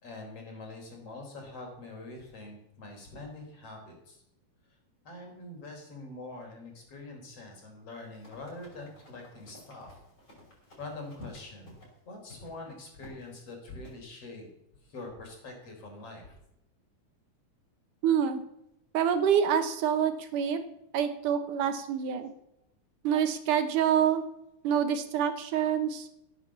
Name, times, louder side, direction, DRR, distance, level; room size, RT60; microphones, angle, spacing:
voice 1, 0.0-4.2 5.1-10.0 10.8-11.8 12.1-14.5 14.9-16.4, left 2 dB, 45° left, 2 dB, 5.1 m, -44 dB
Run, 8.0-11.9 12.3-12.5 13.0-13.3 13.8-14.0, left 2 dB, 30° left, 6.2 m, -54 dB
voice 2, 18.0-18.4 18.9-20.6 20.9-22.3 23.0-24.2 24.6-26.1, right 8 dB, 75° right, 9 dB, 2.7 m, -26 dB
16.5 x 9.1 x 7.3 m, 0.80 s
omnidirectional pair, 3.8 m